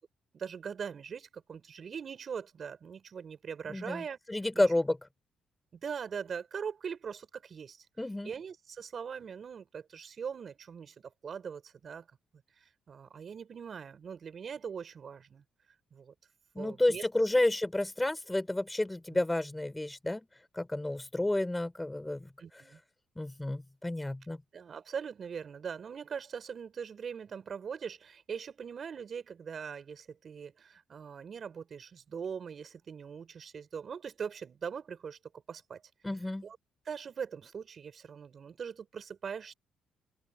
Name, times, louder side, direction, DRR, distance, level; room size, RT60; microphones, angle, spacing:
voice 1, 0.3-4.2 4.5-4.6 5.7-7.8 8.2-10.9 11.2-12.1 12.6-15.4 15.9-16.1 16.6-17.0 19.1-19.2 22.4-22.8 24.5-35.2 35.5-35.8 36.4-36.6 36.8-39.5, right 6 dB, 50° right, 5.0 m, -41 dB
voice 2, 3.7-5.0 8.0-8.3 16.5-20.3 20.5-22.3 23.2-24.4 36.0-36.5, left 1 dB, 10° left, 6.4 m, -31 dB
open air
cardioid pair, 90°, 0 cm